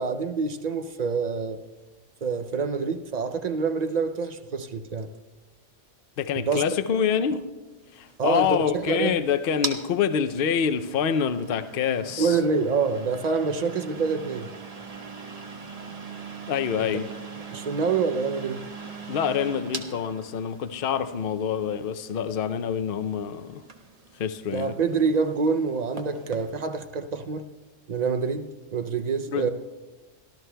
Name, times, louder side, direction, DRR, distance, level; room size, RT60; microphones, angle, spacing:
voice 1, 0.0-1.6 2.2-5.1 6.4-6.6 8.2-9.2 12.2-14.5 16.8-16.9 17.5-18.6 24.5-27.4 27.9-29.5, right 5 dB, 55° right, 0.5 m, -26 dB
voice 2, 6.2-7.5 7.9-12.4 16.5-17.1 19.1-23.6 24.2-24.8 29.3-29.5, left 7 dB, 55° left, 0.7 m, -26 dB
sound 1, 7.8-26.5, right 4 dB, 35° right, 1.0 m, -41 dB
25.0 x 13.0 x 2.2 m
omnidirectional pair, 1.3 m